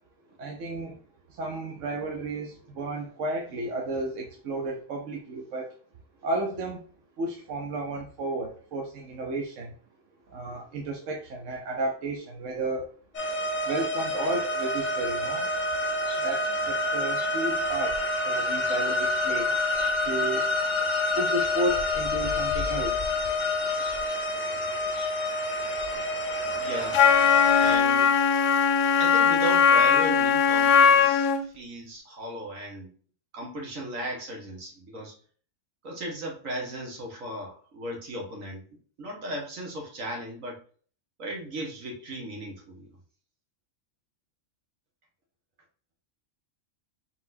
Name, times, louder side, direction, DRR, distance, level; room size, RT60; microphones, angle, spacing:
voice 1, 0.4-1.0 1.3-5.7 6.2-6.8 7.2-9.7 10.3-12.9 13.6-15.5 16.2-19.5 20.0-20.5 21.2-23.1, right 2 dB, 75° right, 1 dB, 1.1 m, -33 dB
sound 1, 13.1-27.8, left 2 dB, 40° left, 0.9 m, -28 dB
voice 2, 26.5-27.0 27.6-28.1 29.0-31.3 31.5-32.9 33.3-35.2 35.8-38.6 39.0-40.6 41.2-42.9, right 1 dB, 90° right, -1 dB, 2.0 m, -36 dB
Wind instrument woodwind instrument, 26.9-31.4, left 7 dB, 70° left, 0.9 m, -20 dB
4.1 x 4.1 x 2.6 m, 0.43 s
omnidirectional pair, 1.3 m